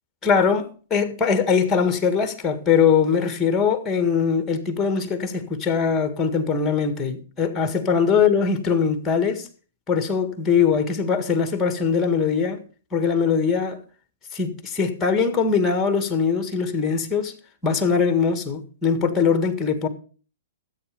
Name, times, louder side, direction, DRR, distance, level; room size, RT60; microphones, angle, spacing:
voice 1, 0.2-9.5 9.9-12.6 12.9-13.8 14.3-17.3 17.6-19.9, left 6 dB, 15° left, 1.8 m, -21 dB
13.5 x 8.8 x 5.2 m
hypercardioid pair, 150°, 0 cm